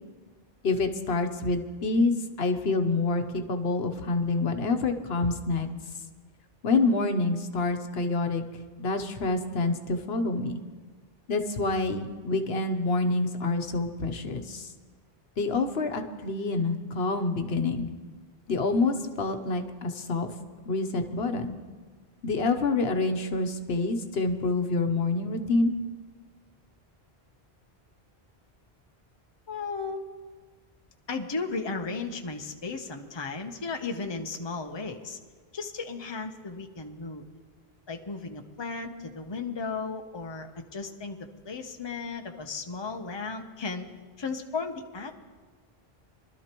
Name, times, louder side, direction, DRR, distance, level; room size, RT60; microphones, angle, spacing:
voice 1, 0.6-5.7 6.6-8.4 8.8-10.5 11.3-14.7 15.4-17.9 18.5-20.3 20.7-21.6 22.2-25.7, left 3 dB, 75° left, 7 dB, 1.1 m, -27 dB
voice 2, 29.5-30.0 31.1-35.2 35.5-37.3 37.9-41.2 41.4-43.8 44.2-45.1, left 4 dB, 30° left, 4 dB, 0.9 m, -35 dB
24.0 x 12.5 x 3.0 m, 1.4 s
omnidirectional pair, 1.0 m